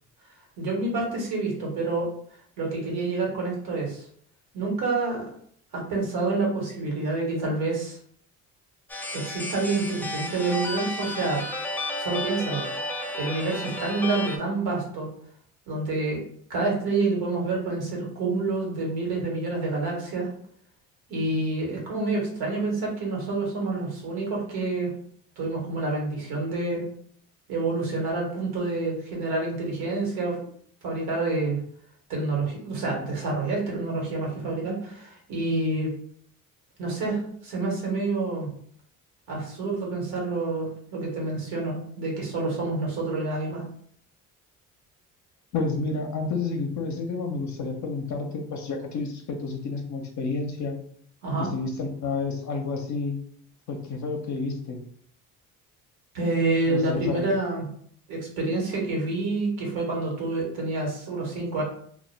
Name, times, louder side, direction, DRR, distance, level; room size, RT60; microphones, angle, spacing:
voice 1, 0.6-2.1 2.6-4.1 4.5-5.3 5.7-8.0 9.1-11.4 12.0-12.6 13.2-15.1 15.7-16.2 16.5-20.3 21.1-24.9 25.4-26.8 27.5-30.4 30.8-31.6 32.1-35.9 36.8-38.5 39.3-43.6 51.2-51.5 56.1-57.7 58.1-61.6, right 3 dB, 75° right, -2 dB, 1.1 m, -28 dB
sound 1, 8.9-14.4, left 2 dB, 5° left, 0.3 m, -32 dB
voice 2, 45.5-50.8 51.4-53.2 53.7-54.8 56.7-57.3, left 4 dB, 50° left, 3 dB, 0.6 m, -30 dB
2.2 x 2.1 x 3.1 m, 0.62 s
supercardioid pair, 65°, 38 cm